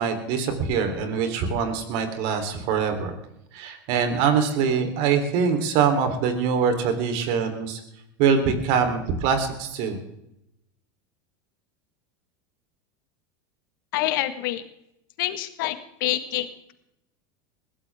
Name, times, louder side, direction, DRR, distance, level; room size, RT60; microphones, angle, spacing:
voice 1, 0.0-3.1 3.5-7.8 8.2-10.0, right 6 dB, 60° right, 6 dB, 3.8 m, -23 dB
voice 2, 13.9-14.6 15.2-16.5, left 15 dB, 70° left, 10 dB, 1.7 m, -26 dB
21.0 x 16.0 x 3.7 m, 0.81 s
hypercardioid pair, 95°, 11 cm